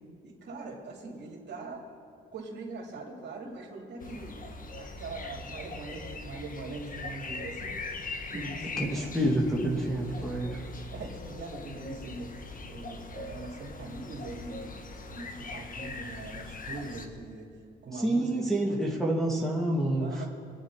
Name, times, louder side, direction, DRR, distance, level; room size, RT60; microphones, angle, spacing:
voice 1, 0.2-1.9 2.3-7.7 8.3-9.1 10.0-10.3 10.6-12.3 12.7-14.8 15.1-17.5 17.8-18.8 20.0-20.3, right 3 dB, 60° right, -2 dB, 2.8 m, -42 dB
sound 1, 4.0-17.1, left 3 dB, 45° left, 1.5 m, -41 dB
voice 2, 8.8-10.5 17.9-20.2, right 1 dB, ahead, -4 dB, 2.3 m, -28 dB
24.5 x 9.5 x 5.0 m, 2.5 s
cardioid pair, 90°, 20 cm